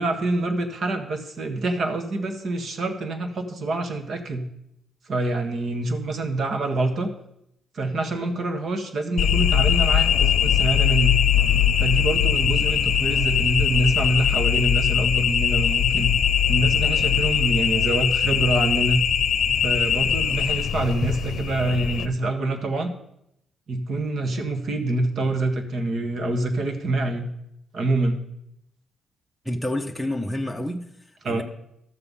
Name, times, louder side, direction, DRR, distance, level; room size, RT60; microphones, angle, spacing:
voice 1, 0.0-4.5 5.1-7.1 7.7-11.2 11.8-16.1 16.5-19.0 19.6-22.9 23.7-27.3 27.7-28.2 31.2-31.4, right 2 dB, 55° right, 6 dB, 1.6 m, -26 dB
sound 1, 9.2-22.1, left 8 dB, 70° left, 0.7 m, -21 dB
voice 2, 29.4-31.4, left 1 dB, ahead, 1 dB, 0.9 m, -29 dB
13.0 x 6.9 x 5.6 m, 0.77 s
cardioid pair, 105°, 0 cm